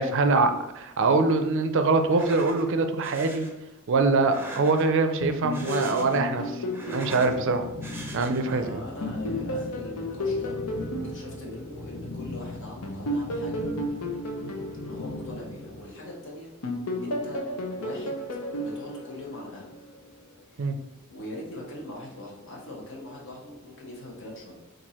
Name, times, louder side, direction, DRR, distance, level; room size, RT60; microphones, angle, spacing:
voice 1, 0.0-3.5 3.9-6.6 6.9-7.7 8.1-8.8 14.4-14.5 20.6-20.8, right 3 dB, 60° right, 7 dB, 0.5 m, -24 dB
sound 1, 2.0-2.6 3.0-3.5 4.2-5.0 5.4-6.3 6.6-7.4 7.8-8.6, right 2 dB, 10° right, 0.6 m, -41 dB
sound 2, 5.2-8.5 9.0-12.3 12.8-16.1 16.6-19.9, left 1 dB, 90° left, 0.7 m, -33 dB
sound 3, 7.2-15.8, left 2 dB, 35° left, 0.4 m, -39 dB
voice 2, 8.1-13.7 14.9-16.5 17.0-17.4 17.8-18.2 18.6-19.7 20.5-20.7 21.1-24.6, left 1 dB, 60° left, -3 dB, 1.1 m, -41 dB
4.4 x 2.6 x 4.2 m, 0.93 s
head